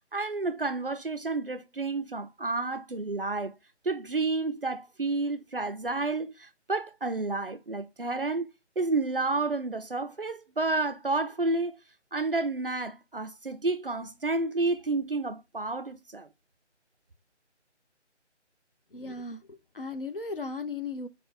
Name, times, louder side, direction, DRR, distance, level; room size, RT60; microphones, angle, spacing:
voice 1, 0.1-3.6 3.8-8.5 8.8-11.8 12.1-16.3, right 3 dB, 50° right, 0.4 m, -30 dB
voice 2, 18.9-19.4 19.7-21.1, left 3 dB, 50° left, 0.6 m, -36 dB
4.7 x 2.6 x 4.1 m
figure-of-eight pair, 180°, 36 cm